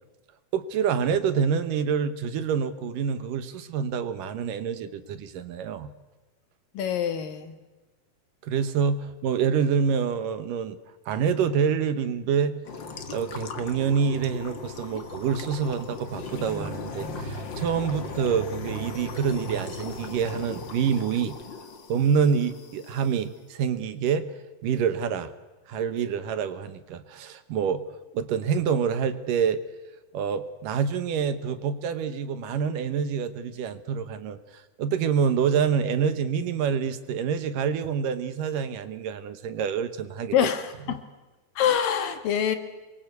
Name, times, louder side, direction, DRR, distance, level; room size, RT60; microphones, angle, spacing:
voice 1, 0.5-5.9 8.4-10.8 11.1-12.6 13.1-21.4 21.9-24.3 24.6-25.3 25.7-27.8 28.1-29.6 30.1-40.3 40.9-41.0, right 7 dB, 70° right, 11 dB, 2.8 m, -27 dB
voice 2, 6.7-7.6 40.3-41.0 41.6-42.6, left 9 dB, 75° left, 8 dB, 3.4 m, -25 dB
sound 1, 12.6-23.1, left 3 dB, 40° left, 1.8 m, -37 dB
27.0 x 23.0 x 8.2 m, 1.2 s
omnidirectional pair, 4.0 m